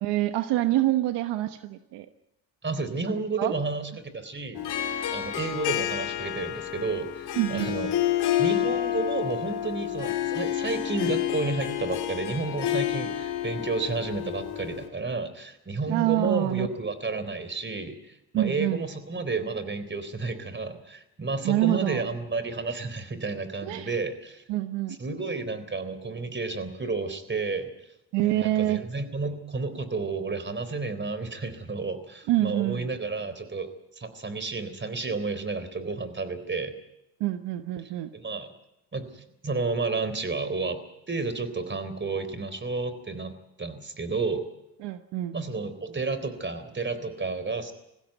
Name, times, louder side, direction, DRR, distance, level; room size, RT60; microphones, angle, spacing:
voice 1, 0.0-2.1 3.4-3.5 7.4-7.8 15.9-16.7 18.3-18.8 21.4-22.0 23.6-24.0 24.5-25.0 28.1-28.8 32.3-32.9 37.2-38.1 44.8-45.3, right 15 dB, 75° right, 10 dB, 1.2 m, -26 dB
voice 2, 2.6-4.7 5.1-7.9 8.4-24.4 24.9-27.7 28.2-33.7 34.0-36.7 37.8-38.5 38.9-40.8 41.1-44.4 45.3-47.7, right 3 dB, 25° right, 12 dB, 3.7 m, -31 dB
Harp, 4.6-14.9, left 12 dB, 70° left, 3.1 m, -29 dB
20.5 x 16.0 x 9.2 m, 0.89 s
supercardioid pair, 70°, 41 cm